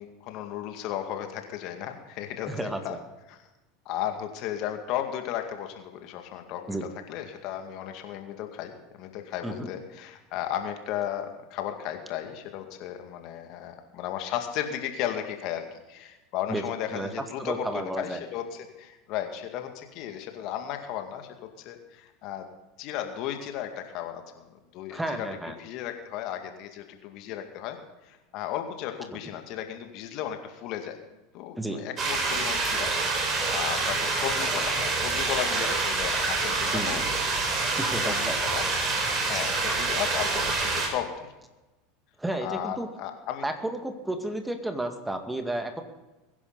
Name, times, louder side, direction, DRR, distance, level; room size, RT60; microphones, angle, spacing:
voice 1, 0.0-3.0 3.3-3.4 3.9-22.5 22.8-24.5 24.7-25.3 25.6-31.0 31.3-37.2 37.5-38.7 39.2-41.3 42.4-43.4, left 10 dB, 55° left, 5 dB, 2.1 m, -35 dB
voice 2, 2.5-3.0 6.7-6.9 9.4-9.7 16.5-16.6 16.9-17.1 17.4-18.2 24.9-25.6 31.6-31.8 36.7-37.0 37.8-38.4 42.2-42.9 43.4-45.8, right 1 dB, 10° right, 6 dB, 2.0 m, -32 dB
sound 1, 32.0-40.9, right 3 dB, 35° right, 4.9 m, -27 dB
22.5 x 11.0 x 4.1 m, 1.1 s
hypercardioid pair, 80°, 0 cm